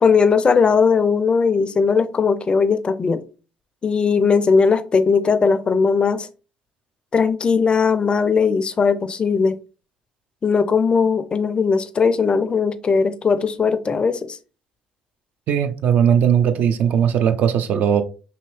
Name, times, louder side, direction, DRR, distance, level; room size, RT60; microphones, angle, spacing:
voice 1, 0.0-3.2 3.8-6.3 7.1-9.6 10.4-14.4, left 5 dB, 35° left, 0.4 m, -18 dB
voice 2, 15.5-18.0, right 8 dB, 60° right, 0.4 m, -18 dB
2.8 x 2.6 x 3.1 m
hypercardioid pair, 60°, 3 cm